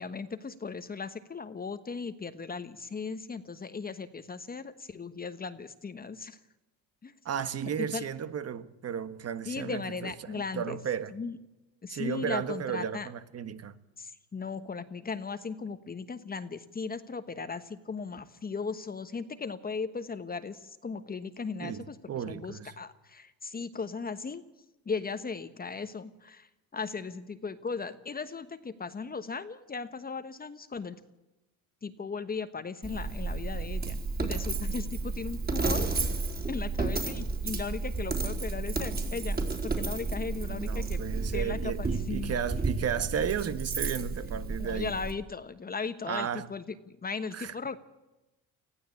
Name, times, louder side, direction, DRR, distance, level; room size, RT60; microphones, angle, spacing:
voice 1, 0.0-6.4 7.0-7.1 7.9-8.0 9.5-10.8 11.1-11.4 11.8-13.1 14.0-22.0 22.3-24.4 24.8-31.0 31.8-36.2 36.5-41.0 41.3-42.4 44.6-47.8, left 5 dB, 25° left, 1.2 m, -37 dB
voice 2, 7.2-11.1 11.9-13.8 21.6-22.7 40.5-45.0 46.1-46.5 47.3-47.5, right 8 dB, 45° right, 1.4 m, -34 dB
Coin (dropping), 32.8-45.1, right 3 dB, 25° right, 3.9 m, -32 dB
20.0 x 15.0 x 8.4 m
cardioid pair, 95°, 34 cm